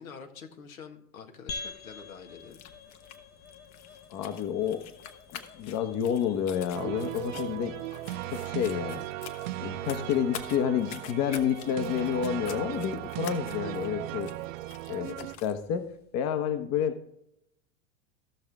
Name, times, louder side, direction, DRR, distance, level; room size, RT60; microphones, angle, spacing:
voice 1, 0.0-2.6, left 6 dB, 90° left, 4 dB, 1.8 m, -46 dB
sound 1, 1.5-16.1, left 4 dB, 25° left, 0.9 m, -49 dB
sound 2, 2.4-15.6, left 9 dB, 55° left, 1.4 m, -47 dB
voice 2, 4.1-4.9 5.3-7.8 8.3-9.0 9.6-14.3 14.9-15.9 16.1-17.0, left 8 dB, 40° left, 8 dB, 1.2 m, -29 dB
sound 3, 6.7-15.4, right 16 dB, 70° right, 0.6 m, -37 dB
16.0 x 6.3 x 3.6 m, 0.76 s
hypercardioid pair, 110°, 41 cm